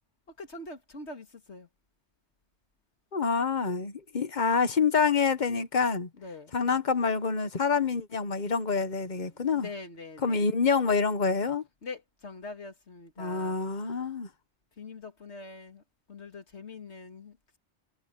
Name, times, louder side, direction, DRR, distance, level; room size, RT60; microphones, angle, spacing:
voice 1, 0.3-1.7 6.2-6.6 9.3-10.4 11.8-14.2 14.8-15.8 16.1-17.6, left 3 dB, 90° left, 2.5 m, -44 dB
voice 2, 3.1-6.1 6.5-9.7 10.2-11.6 13.2-14.3, left 5 dB, 45° left, 1.2 m, -27 dB
omnidirectional pair, 1.1 m